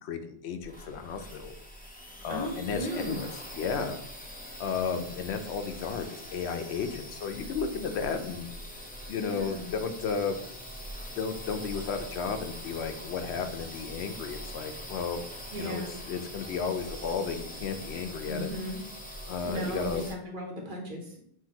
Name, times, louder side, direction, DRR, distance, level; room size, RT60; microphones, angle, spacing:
voice 1, 0.0-1.5 2.2-3.3 3.5-4.0 4.6-8.5 9.1-10.4 11.2-15.2 15.6-15.8 16.1-18.5 19.3-20.1, left 5 dB, 85° left, 8 dB, 0.8 m, -33 dB
sound 1, 0.6-20.1, equal, 15° left, 0.4 m, -43 dB
voice 2, 2.3-3.2 9.2-9.7 15.5-15.9 18.2-18.8 19.4-21.2, equal, 55° right, 1 dB, 1.0 m, -36 dB
5.8 x 2.6 x 2.8 m, 0.70 s
omnidirectional pair, 1.1 m